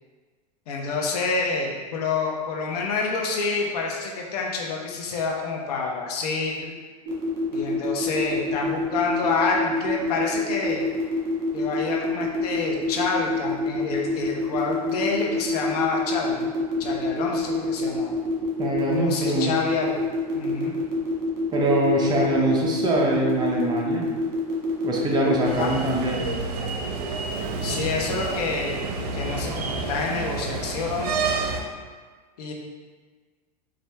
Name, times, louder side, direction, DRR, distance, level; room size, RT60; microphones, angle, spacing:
voice 1, 0.7-6.8 7.5-10.8 11.5-16.5 16.8-18.1 18.8-20.1 20.3-20.8 25.6-25.7 27.6-31.2 32.4-32.5, left 4 dB, 80° left, -1 dB, 0.8 m, -28 dB
sound 1, 7.1-25.5, equal, 55° right, 1.4 m, -27 dB
voice 2, 18.6-19.5 21.5-24.1 24.8-26.3, right 1 dB, 20° right, -2 dB, 0.6 m, -23 dB
sound 2, 25.4-31.6, right 4 dB, 80° right, 0.6 m, -29 dB
4.4 x 2.5 x 3.3 m, 1.5 s
supercardioid pair, 135°, 20 cm